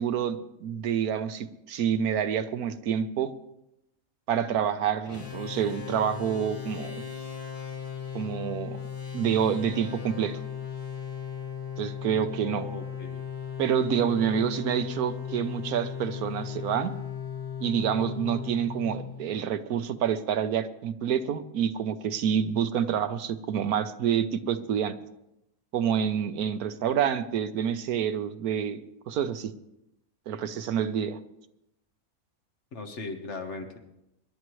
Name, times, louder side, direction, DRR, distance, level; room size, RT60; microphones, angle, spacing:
voice 1, 0.0-3.3 4.3-7.0 8.1-8.8 9.1-10.4 11.8-12.7 13.6-16.9 17.6-25.0 25.7-28.8 29.1-29.5 30.3-31.2, right 8 dB, 90° right, 11 dB, 1.3 m, -28 dB
sound 1, 5.0-19.6, left 7 dB, 75° left, 6.6 m, -37 dB
voice 2, 12.4-13.2 32.7-33.8, left 3 dB, 55° left, 5 dB, 1.6 m, -38 dB
25.0 x 11.5 x 3.1 m, 0.86 s
omnidirectional pair, 1.5 m